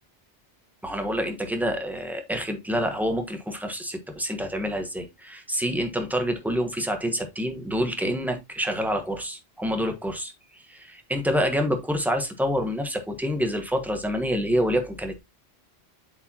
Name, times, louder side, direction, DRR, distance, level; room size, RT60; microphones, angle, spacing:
voice 1, 0.8-15.2, equal, ahead, 1.1 m, -27 dB
7.8 x 4.9 x 2.8 m
omnidirectional pair, 1.1 m